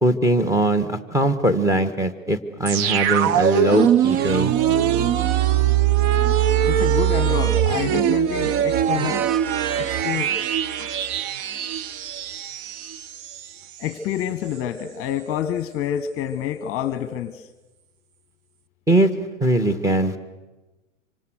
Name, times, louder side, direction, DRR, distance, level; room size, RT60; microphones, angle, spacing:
voice 1, 0.0-4.5 18.9-19.1 19.4-20.2, right 1 dB, 10° right, 9 dB, 1.7 m, -20 dB
sound 1, 2.7-13.5 13.8-13.9, right 10 dB, 40° right, 0.9 m, -21 dB
voice 2, 6.7-9.4 9.7-10.3 10.8-10.9 13.8-17.5, left 10 dB, 35° left, 14 dB, 1.1 m, -28 dB
26.0 x 25.5 x 6.5 m, 1.1 s
figure-of-eight pair, 95°, 39 cm